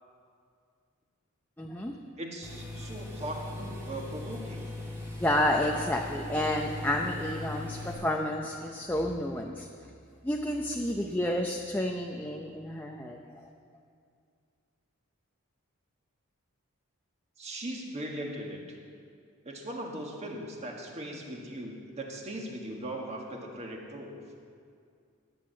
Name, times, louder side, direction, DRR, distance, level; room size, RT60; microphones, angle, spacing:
voice 1, 1.6-2.0 5.1-9.7 10.2-13.2, left 1 dB, 10° left, 1 dB, 0.6 m, -30 dB
voice 2, 2.2-4.6 17.4-18.6 19.4-24.1, right 1 dB, 30° right, 0 dB, 1.6 m, -39 dB
sound 1, 2.4-7.9, left 2 dB, 10° right, 2.4 m, -40 dB
11.0 x 8.8 x 7.5 m, 2.3 s
head